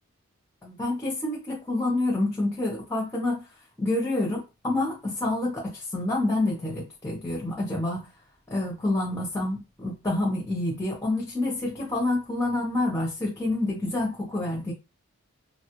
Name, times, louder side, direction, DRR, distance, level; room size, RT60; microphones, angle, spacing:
voice 1, 0.6-3.5 3.8-8.1 8.5-14.7, left 2 dB, 15° left, 0.7 m, -28 dB
2.8 x 2.3 x 2.9 m
head